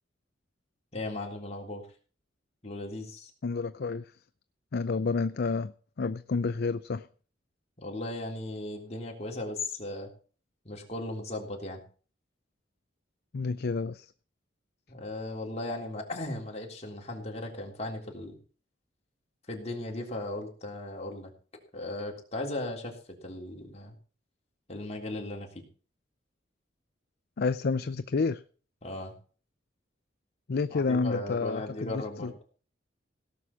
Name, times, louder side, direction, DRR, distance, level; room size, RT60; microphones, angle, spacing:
voice 1, 0.9-1.8 2.6-3.3 7.8-10.1 10.7-11.8 14.9-18.4 19.5-21.3 21.7-24.0 24.7-25.6 28.8-29.1 30.7-32.3, left 2 dB, 35° left, 3.4 m, -37 dB
voice 2, 3.4-4.1 4.7-5.7 6.0-7.1 13.3-14.1 27.4-28.4 30.5-32.3, left 4 dB, 60° left, 0.5 m, -29 dB
17.0 x 6.3 x 7.1 m
head